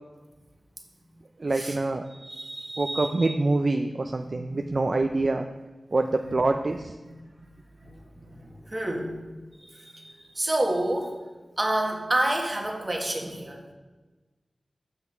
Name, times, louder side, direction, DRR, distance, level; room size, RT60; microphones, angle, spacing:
voice 1, 1.4-2.1 2.8-5.5 5.9-7.0, right 2 dB, 55° right, 6 dB, 0.4 m, -25 dB
voice 2, 2.1-3.1 4.5-4.6 6.2-6.3 7.4-7.5 7.8-7.9 8.3-9.2 9.6-11.2 11.6-13.6, right 1 dB, 35° right, 0 dB, 1.6 m, -29 dB
7.8 x 5.9 x 4.4 m, 1.2 s
cardioid pair, 45°, 0 cm